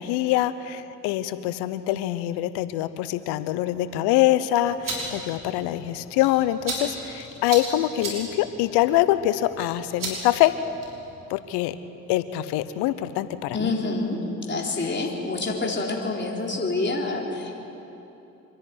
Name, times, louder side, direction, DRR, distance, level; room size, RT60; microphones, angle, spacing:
voice 1, 0.0-10.5 11.3-11.7 12.1-13.7, left 14 dB, 75° left, 13 dB, 0.9 m, -24 dB
sound 1, 4.6-11.1, right 2 dB, 50° right, 5.9 m, -37 dB
voice 2, 13.5-17.6, left 2 dB, 25° left, -1 dB, 3.9 m, -27 dB
26.0 x 10.5 x 9.6 m, 3.0 s
hypercardioid pair, 50°, 41 cm